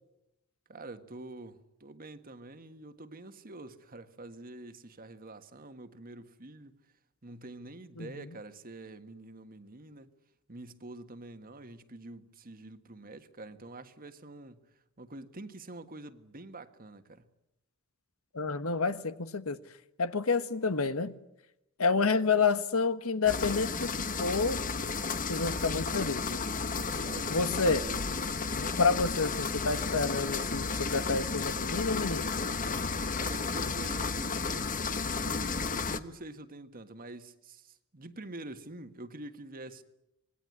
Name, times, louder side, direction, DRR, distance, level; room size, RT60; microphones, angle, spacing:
voice 1, 0.7-6.8 7.2-10.1 10.5-14.6 15.0-17.3 27.0-28.1 33.2-34.8 35.2-39.8, right 2 dB, 45° right, 1.6 m, -46 dB
voice 2, 18.3-19.6 20.0-21.2 21.8-24.6 25.3-26.4 27.3-27.8 28.5-32.3, left 4 dB, 80° left, 1.3 m, -29 dB
sound 1, 23.3-36.0, left 4 dB, 40° left, 1.2 m, -33 dB
26.0 x 20.5 x 9.7 m
head